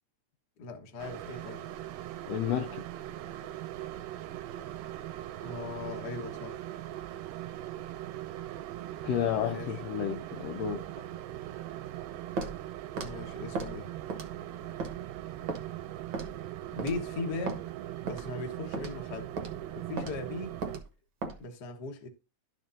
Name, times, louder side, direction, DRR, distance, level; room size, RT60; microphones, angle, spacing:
voice 1, 0.6-1.6 5.4-6.6 9.5-9.7 13.0-13.9 16.7-17.6 18.0-19.3 19.8-20.6 21.4-22.1, left 3 dB, 60° left, 1.0 m, -38 dB
sound 1, 1.0-20.8, right 13 dB, 85° right, 2.1 m, -40 dB
voice 2, 2.3-2.8 9.0-10.8, left 9 dB, 85° left, 1.4 m, -31 dB
Walk footsteps, 12.4-12.6 13.0-13.1 13.5-13.7 14.1-14.4 14.8-14.9 15.5-15.6 16.1-16.4 16.8-17.0 17.5-17.6 18.1-18.3 18.7-19.0 19.4-19.5 20.0-20.1 20.6-20.8 21.2-21.4, right 3 dB, 65° right, 1.2 m, -35 dB
12.0 x 5.4 x 2.6 m
omnidirectional pair, 3.8 m